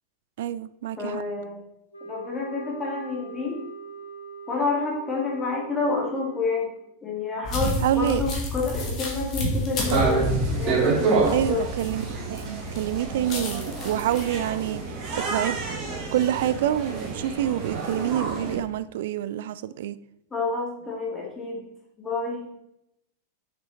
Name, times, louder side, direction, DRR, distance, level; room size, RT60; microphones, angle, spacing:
voice 1, 0.4-1.2 7.8-8.2 11.3-15.0 15.3-15.6 16.1-20.0, right 12 dB, 55° right, 0.3 m, -27 dB
voice 2, 1.0-1.6 2.0-3.6 4.5-6.7 7.0-11.6 20.3-21.6 22.0-22.4, left 4 dB, 15° left, 2.4 m, -29 dB
sound 1, 1.9-6.8, right 5 dB, 85° left, 1.1 m, -41 dB
sound 2, 7.4-12.4 12.7-14.4, left 1 dB, 35° left, 2.0 m, -29 dB
sound 3, 9.9-18.6, right 4 dB, 40° right, 2.4 m, -28 dB
7.1 x 6.2 x 4.0 m
figure-of-eight pair, 90°, 0 cm